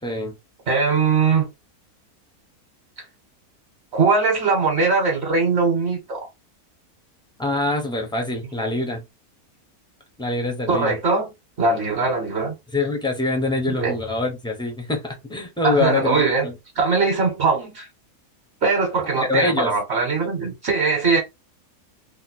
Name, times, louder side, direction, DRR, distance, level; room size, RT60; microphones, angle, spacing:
voice 1, 0.0-0.3 7.4-9.0 10.2-11.0 12.7-16.5 19.3-19.7, left 2 dB, 5° left, 0.4 m, -24 dB
voice 2, 0.7-1.5 3.0-3.1 3.9-6.3 10.7-11.3 11.6-12.5 13.7-13.9 15.6-16.5 16.8-17.9 18.6-21.2, right 4 dB, 50° right, 1.1 m, -21 dB
2.8 x 2.2 x 4.1 m
omnidirectional pair, 1.6 m